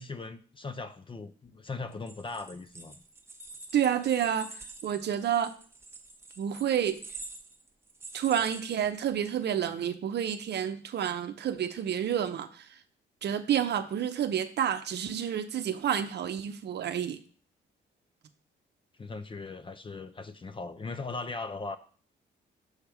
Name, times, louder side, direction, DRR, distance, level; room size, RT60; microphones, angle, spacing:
voice 1, 0.0-3.0 19.0-21.8, left 3 dB, 25° left, 0.5 m, -39 dB
sound 1, 1.9-9.4, right 3 dB, 10° right, 0.9 m, -47 dB
voice 2, 3.7-5.5 6.4-7.0 8.1-12.7 13.2-17.2, right 9 dB, 60° right, 0.7 m, -29 dB
6.4 x 3.4 x 5.9 m
cardioid pair, 90°, 20 cm